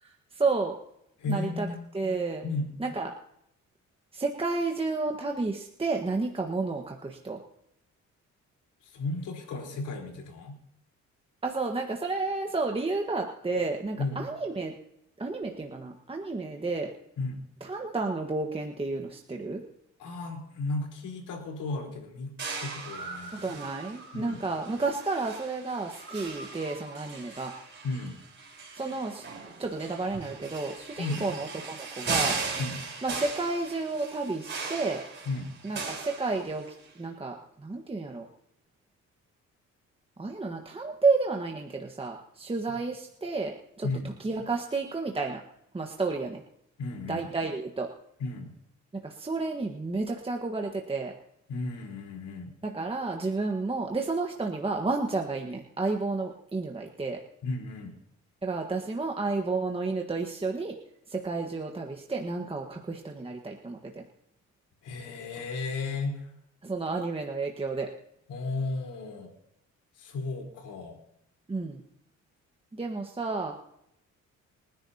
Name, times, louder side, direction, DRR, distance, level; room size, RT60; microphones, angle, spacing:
voice 1, 0.0-0.8 1.3-1.7 1.9-2.4 2.8-3.1 4.1-7.4 11.4-14.7 15.2-16.9 17.6-19.6 23.3-27.5 28.7-29.3 29.6-32.4 33.0-35.0 35.6-36.6 36.9-38.3 40.2-45.4 45.7-46.4 47.1-47.9 49.0-51.1 52.6-57.2 58.4-60.8 61.1-64.0 66.6-67.9 71.5-71.8 72.7-73.5, right 3 dB, 20° right, 1 dB, 1.4 m, -31 dB
voice 2, 1.2-1.8 2.4-2.7 8.8-10.6 14.0-14.2 17.2-17.4 20.0-22.3 22.6-23.5 24.1-24.4 27.8-28.2 31.0-31.3 32.6-32.8 35.2-35.5 43.8-44.1 46.8-47.3 48.2-48.5 51.5-52.5 57.4-57.9 64.8-66.3 68.3-69.3 70.0-71.0, left 3 dB, 80° left, 1 dB, 4.1 m, -34 dB
sound 1, 22.4-36.9, right 4 dB, 40° right, 4.1 m, -38 dB
28.5 x 10.5 x 2.8 m, 0.78 s
cardioid pair, 90°, 30 cm